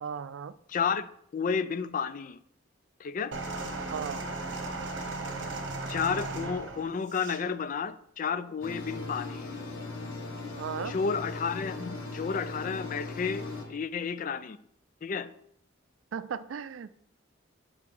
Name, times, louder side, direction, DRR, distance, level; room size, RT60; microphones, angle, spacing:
voice 1, 0.0-0.5 3.9-4.2 10.6-10.9 16.1-16.9, right 7 dB, 85° right, 0.4 m, -36 dB
voice 2, 0.7-1.1 1.3-2.4 3.0-3.3 5.9-9.5 10.8-14.6 15.0-15.3, left 6 dB, 45° left, 0.3 m, -31 dB
sound 1, 3.3-7.4 8.3-8.5, right 2 dB, 70° right, 1.1 m, -36 dB
sound 2, 8.6-13.6, left 3 dB, 75° left, 1.3 m, -38 dB
5.7 x 5.0 x 4.6 m
head